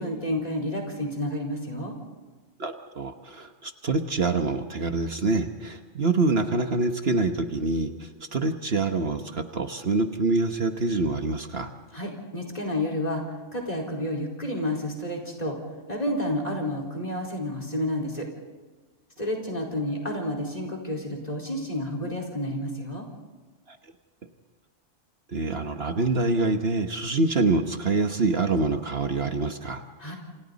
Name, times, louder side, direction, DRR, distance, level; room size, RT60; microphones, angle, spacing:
voice 1, 0.0-2.0 11.9-13.2 13.5-15.6 15.9-18.2 19.2-23.1 30.0-30.2, left 1 dB, 30° left, 2 dB, 4.7 m, -30 dB
voice 2, 2.6-11.7 23.7-23.8 25.3-29.8, right 3 dB, 55° right, 6 dB, 1.4 m, -26 dB
28.0 x 28.0 x 4.1 m, 1.3 s
omnidirectional pair, 1.2 m